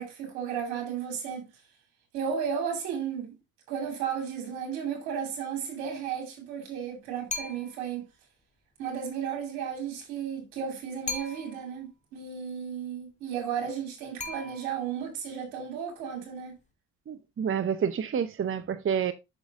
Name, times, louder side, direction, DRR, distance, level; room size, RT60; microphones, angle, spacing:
voice 1, 0.0-1.5 2.1-3.4 3.7-8.1 8.8-16.5, right 7 dB, 80° right, 2.9 m, -34 dB
sound 1, 7.3-7.9 11.1-11.8 14.2-15.0, left 3 dB, 20° left, 2.1 m, -37 dB
voice 2, 17.1-19.1, right 7 dB, 35° right, 0.7 m, -29 dB
6.4 x 6.3 x 3.6 m
hypercardioid pair, 55°, 37 cm